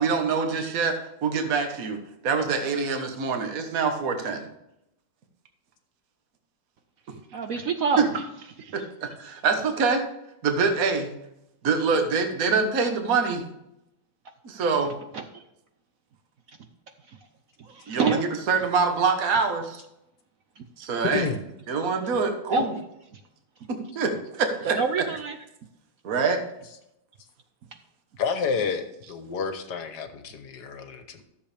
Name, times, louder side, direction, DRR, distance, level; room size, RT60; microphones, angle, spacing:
voice 1, 0.0-4.5 8.0-8.1 8.7-10.1 10.4-11.1 11.6-13.4 14.4-14.9 17.9-18.2 18.5-19.8 20.8-21.3 21.7-22.7 23.7-24.8 26.0-26.4, right 5 dB, 50° right, 5 dB, 1.5 m, -25 dB
voice 2, 7.3-8.1 14.8-15.4 16.5-16.6 17.1-17.2 17.6-18.2 22.5-22.6 23.1-23.2 24.6-25.4, right 4 dB, 65° right, 7 dB, 0.8 m, -28 dB
voice 3, 21.1-21.4 28.2-31.2, left 6 dB, 60° left, 8 dB, 1.4 m, -30 dB
13.0 x 7.2 x 3.4 m, 0.84 s
omnidirectional pair, 2.1 m